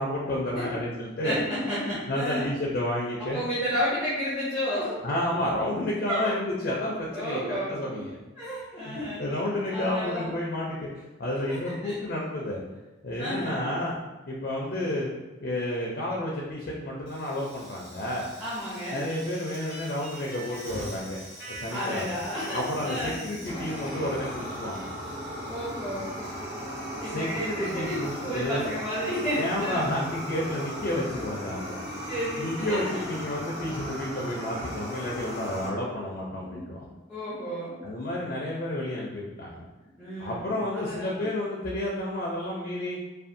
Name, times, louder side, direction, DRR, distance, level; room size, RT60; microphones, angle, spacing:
voice 1, 0.0-1.4 2.1-3.4 5.0-8.1 8.8-12.6 13.0-14.0 14.3-15.1 15.4-18.3 18.9-21.2 21.5-22.1 22.5-24.9 27.0-28.7 29.4-31.8 32.4-36.9 37.8-39.6 40.2-43.0, left 1 dB, 50° left, -3 dB, 0.4 m, -31 dB
voice 2, 1.2-2.5 3.2-5.0 6.1-6.3 7.1-8.1 8.4-9.4 9.7-10.3 11.5-11.9 13.2-13.6 18.4-19.1 21.7-23.2 25.5-26.1 26.9-29.9 32.1-33.0 36.4-36.6 37.1-37.8 40.0-41.3, equal, 5° right, -10 dB, 0.5 m, -32 dB
Fire, 17.1-35.7, equal, 75° right, 1.4 m, -38 dB
sound 1, 19.1-28.6, right 1 dB, 55° right, 1.2 m, -47 dB
2.5 x 2.3 x 2.5 m, 1.2 s
head